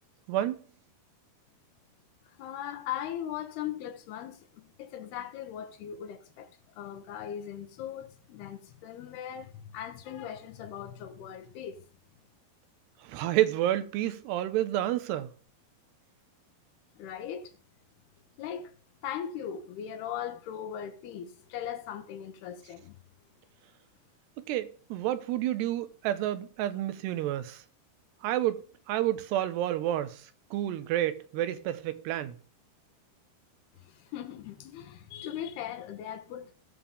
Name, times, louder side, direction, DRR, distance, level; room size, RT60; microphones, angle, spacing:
voice 1, 0.3-0.6 13.0-15.3 24.4-27.6 28.2-28.6 28.9-32.4, right 13 dB, 90° right, 3.1 m, -30 dB
voice 2, 2.3-11.8 17.0-17.5 18.4-18.8 19.0-23.0 33.8-36.5, left 9 dB, 80° left, 3.3 m, -39 dB
18.5 x 7.2 x 3.5 m
omnidirectional pair, 4.7 m